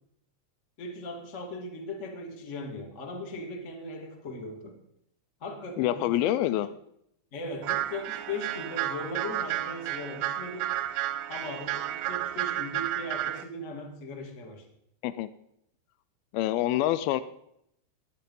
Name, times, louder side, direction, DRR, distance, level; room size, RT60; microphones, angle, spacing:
voice 1, 0.8-4.8 5.4-6.3 6.6-6.7 7.3-10.7 11.3-14.6, left 1 dB, 40° left, 2 dB, 1.0 m, -38 dB
voice 2, 5.8-6.7 15.0-15.3 16.3-17.2, left 14 dB, 85° left, 13 dB, 2.1 m, -26 dB
sound 1, 7.6-13.4, right 13 dB, 85° right, 3.0 m, -32 dB
21.5 x 8.6 x 5.4 m, 0.75 s
omnidirectional pair, 5.1 m